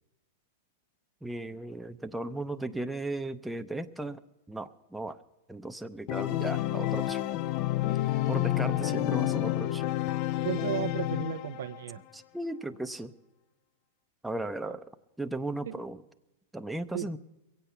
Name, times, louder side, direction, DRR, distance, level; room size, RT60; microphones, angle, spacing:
voice 1, 1.2-4.2 4.5-5.2 5.5-7.3 8.3-9.9 12.1-13.1 14.2-14.9 15.2-16.0 16.5-17.2, right 2 dB, 5° right, 7 dB, 0.6 m, -36 dB
Organ, 6.1-11.8, left 14 dB, 45° left, 0.4 m, -29 dB
voice 2, 10.4-12.0 14.6-14.7 15.6-15.8 16.9-17.1, right 11 dB, 75° right, 11 dB, 0.6 m, -34 dB
22.0 x 8.2 x 5.8 m, 0.99 s
hypercardioid pair, 115°, 0 cm